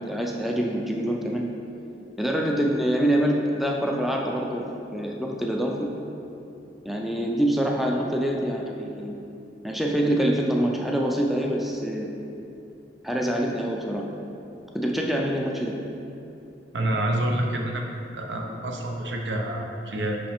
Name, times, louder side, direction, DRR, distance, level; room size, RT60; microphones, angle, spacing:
voice 1, 0.0-1.5 2.2-4.7 4.9-5.9 6.9-9.2 9.6-12.1 13.0-14.0 14.7-15.7, right 1 dB, ahead, 0 dB, 0.3 m, -25 dB
voice 2, 16.7-17.8 18.1-20.2, right 1 dB, 80° right, 1 dB, 0.7 m, -27 dB
5.7 x 5.1 x 3.4 m, 2.8 s
head